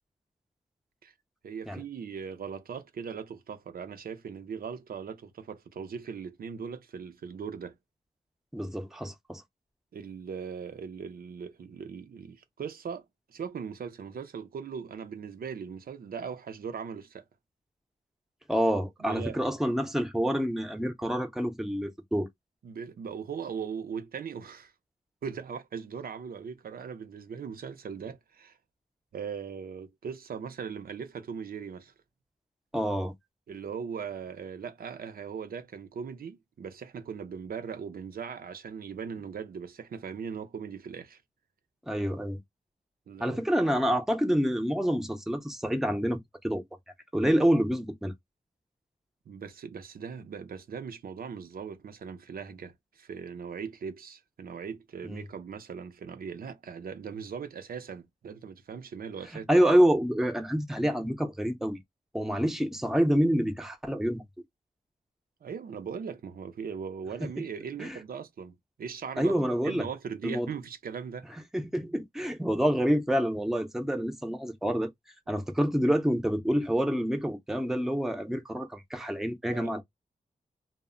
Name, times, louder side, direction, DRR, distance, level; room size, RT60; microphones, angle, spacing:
voice 1, 1.4-7.7 9.9-17.2 19.0-19.4 22.6-24.7 25.2-28.6 29.1-31.9 33.5-41.2 43.1-43.4 49.3-59.5 65.4-69.4 69.6-71.3 75.3-75.5 79.5-79.8, right 6 dB, 75° right, 0.5 m, -39 dB
voice 2, 8.5-9.4 18.5-22.3 32.7-33.1 41.9-42.4 43.2-46.2 46.4-46.6 47.1-48.1 55.0-55.2 59.5-61.8 62.1-64.2 67.8-68.0 69.2-69.9 70.2-70.5 71.5-74.9 75.3-79.8, equal, 5° right, 0.6 m, -27 dB
2.1 x 2.0 x 3.6 m
wide cardioid pair, 80°, 15 cm